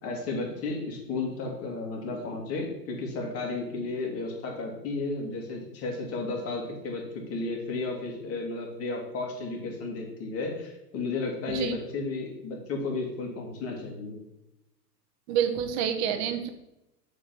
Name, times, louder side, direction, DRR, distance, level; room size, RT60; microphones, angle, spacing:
voice 1, 0.0-7.0 7.3-14.2, left 3 dB, 30° left, 0 dB, 2.4 m, -33 dB
voice 2, 15.3-16.5, right 8 dB, 40° right, 8 dB, 1.1 m, -28 dB
7.2 x 5.2 x 6.1 m, 0.91 s
hypercardioid pair, 135°, 50 cm